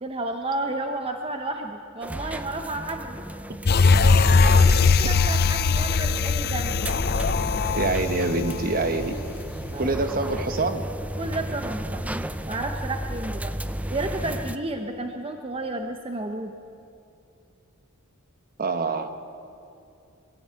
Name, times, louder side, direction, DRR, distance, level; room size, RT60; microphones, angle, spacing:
voice 1, 0.0-3.2 4.4-6.7 9.7-10.1 11.2-12.1 12.5-13.5 13.9-16.5, right 2 dB, 25° right, 5 dB, 0.9 m, -32 dB
sound 1, 2.0-14.6, right 1 dB, 5° right, 0.5 m, -34 dB
sound 2, 3.6-9.3 9.7-9.8, left 4 dB, 45° left, 0.6 m, -20 dB
voice 2, 7.8-9.2 9.8-10.8 18.6-19.1, right 3 dB, 45° right, 8 dB, 1.2 m, -25 dB
22.5 x 15.0 x 8.8 m, 2.6 s
head